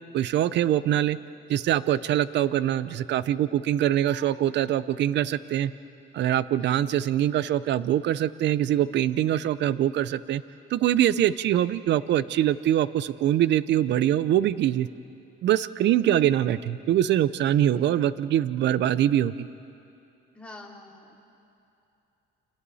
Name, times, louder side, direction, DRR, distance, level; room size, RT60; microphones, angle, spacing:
voice 1, 0.1-1.2 1.5-5.7 6.1-10.4 10.7-14.9 15.4-19.3, right 11 dB, 65° right, 16 dB, 0.7 m, -23 dB
voice 2, 6.6-6.9 17.7-18.0 20.3-21.2, left 2 dB, 5° left, -3 dB, 3.5 m, -47 dB
30.0 x 27.0 x 4.2 m, 2.8 s
cardioid pair, 110°, 19 cm